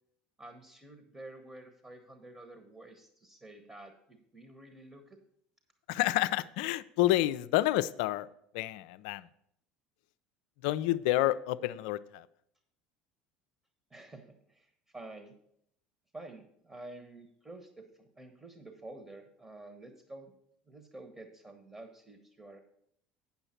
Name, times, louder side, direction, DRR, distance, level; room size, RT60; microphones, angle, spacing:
voice 1, 0.4-5.2 13.9-15.3 16.1-20.3 20.7-22.6, right 2 dB, 20° right, 6 dB, 1.2 m, -50 dB
voice 2, 5.9-8.3 8.5-9.3 10.6-12.3, left 15 dB, 70° left, 14 dB, 0.4 m, -29 dB
8.8 x 7.1 x 4.4 m, 0.72 s
hypercardioid pair, 75°, 5 cm